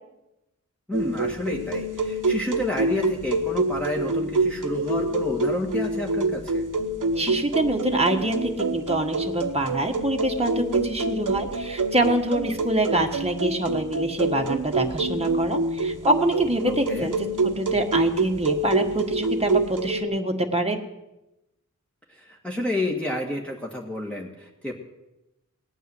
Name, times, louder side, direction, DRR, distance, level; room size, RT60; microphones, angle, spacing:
voice 1, 0.9-6.6 16.7-17.1 22.1-24.7, left 1 dB, 5° left, -2 dB, 1.7 m, -30 dB
sound 1, 0.9-20.0, right 2 dB, 85° right, 1.1 m, -27 dB
voice 2, 7.1-17.1 17.6-20.8, right 1 dB, 20° right, 2 dB, 1.4 m, -25 dB
17.5 x 9.2 x 7.7 m, 0.96 s
wide cardioid pair, 65°, 31 cm